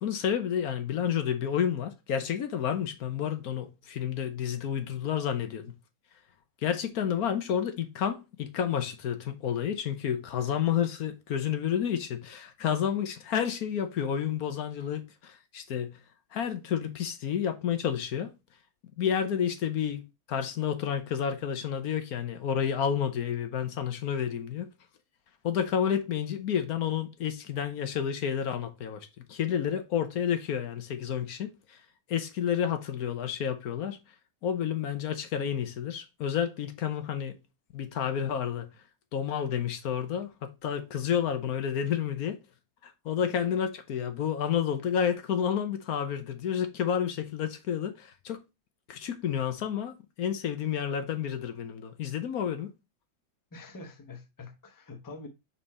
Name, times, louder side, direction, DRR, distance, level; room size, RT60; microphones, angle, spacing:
voice 1, 0.0-5.7 6.6-15.9 16.3-18.3 19.0-20.0 20.3-24.7 25.4-31.8 32.1-34.0 34.4-37.4 37.7-38.7 39.1-42.4 42.8-48.4 48.9-52.7, left 8 dB, 80° left, 1.4 m, -30 dB
voice 2, 53.5-55.3, left 3 dB, 15° left, 0.8 m, -45 dB
5.5 x 4.4 x 4.2 m
omnidirectional pair, 1.6 m